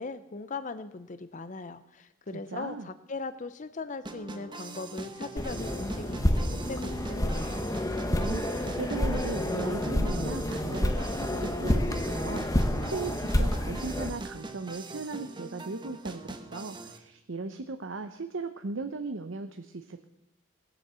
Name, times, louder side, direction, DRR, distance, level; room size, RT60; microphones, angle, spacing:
voice 1, 0.0-7.6, left 3 dB, 40° left, 12 dB, 0.6 m, -39 dB
voice 2, 2.3-2.9 8.1-20.0, right 3 dB, 70° right, 8 dB, 0.7 m, -38 dB
sound 1, 4.0-17.0, right 3 dB, 25° right, 0.9 m, -42 dB
sound 2, 5.4-14.1, left 1 dB, 15° left, 0.9 m, -29 dB
18.5 x 8.1 x 6.8 m, 0.91 s
head